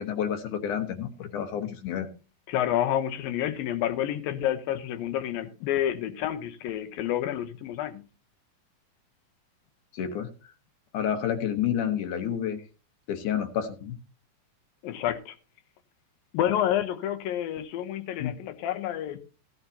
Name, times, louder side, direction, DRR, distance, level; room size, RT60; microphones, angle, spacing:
voice 1, 0.0-2.1 9.9-10.3 10.9-12.6 13.1-14.0 18.2-18.3, left 9 dB, 70° left, 2.3 m, -29 dB
voice 2, 2.5-8.0 14.8-15.4 16.3-19.2, left 11 dB, 85° left, 2.8 m, -29 dB
16.0 x 11.5 x 2.8 m
omnidirectional pair, 4.1 m